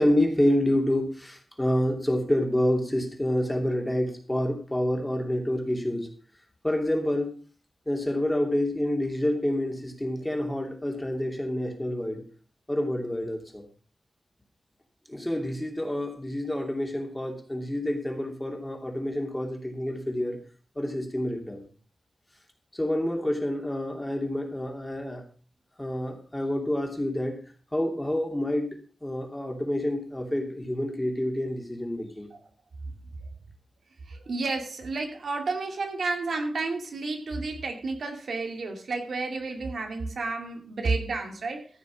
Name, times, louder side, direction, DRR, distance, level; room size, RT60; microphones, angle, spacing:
voice 1, 0.0-6.1 6.6-7.4 7.9-12.2 12.7-13.7 15.1-20.4 20.8-21.6 22.7-25.2 25.8-27.4 27.7-32.3, left 1 dB, 10° left, 2 dB, 2.8 m, -28 dB
voice 2, 34.1-41.7, right 3 dB, 75° right, 4 dB, 2.4 m, -31 dB
14.0 x 6.7 x 6.0 m, 0.38 s
wide cardioid pair, 130°, 0 cm